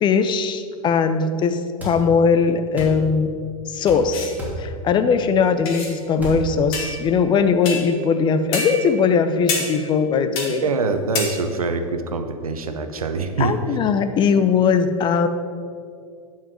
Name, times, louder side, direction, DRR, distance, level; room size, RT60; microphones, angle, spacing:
voice 1, 0.0-3.3 3.7-10.6 13.4-15.3, left 5 dB, 25° left, 10 dB, 0.6 m, -20 dB
sound 1, 1.8-2.0 2.8-3.0 3.9-4.0 4.4-4.6 6.2-6.4, equal, 10° right, 2.8 m, -30 dB
sound 2, 4.1-4.3 5.6-5.9 6.7-7.1 7.6-8.0 8.5-9.0 9.5-10.0 10.3-10.6 11.1-11.2, left 3 dB, 50° left, 2.8 m, -28 dB
voice 2, 10.6-13.6, right 4 dB, 75° right, 8 dB, 0.9 m, -24 dB
11.0 x 5.7 x 6.2 m, 2.3 s
figure-of-eight pair, 95°, 18 cm